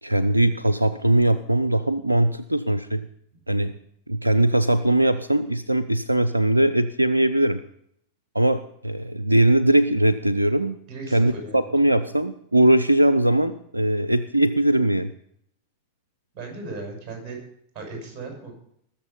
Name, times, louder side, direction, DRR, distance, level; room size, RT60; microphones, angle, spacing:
voice 1, 0.0-3.1 3.5-3.7 4.1-7.6 8.3-10.8 11.1-15.1, right 1 dB, 85° right, 13 dB, 0.4 m, -20 dB
voice 2, 10.9-11.6 16.3-17.4 17.7-18.5, right 3 dB, 30° right, 1 dB, 6.2 m, -36 dB
20.0 x 7.2 x 5.5 m, 0.70 s
figure-of-eight pair, 90°, 0 cm